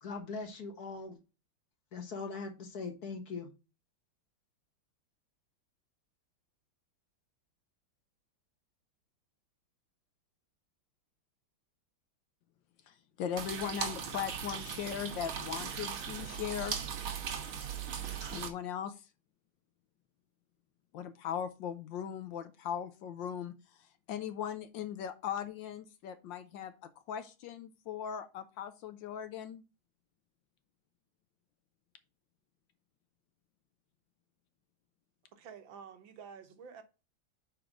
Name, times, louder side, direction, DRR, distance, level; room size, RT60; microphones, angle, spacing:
voice 1, 0.0-1.2 1.9-3.5, left 4 dB, 50° left, 1.6 m, -41 dB
voice 2, 12.9-16.8 18.3-19.0 20.9-23.5 24.1-29.6, left 9 dB, 70° left, 1.3 m, -39 dB
sound 1, 13.4-18.5, right 7 dB, 90° right, 2.1 m, -38 dB
voice 3, 35.4-36.8, right 6 dB, 70° right, 1.6 m, -50 dB
5.2 x 4.8 x 5.9 m
omnidirectional pair, 2.3 m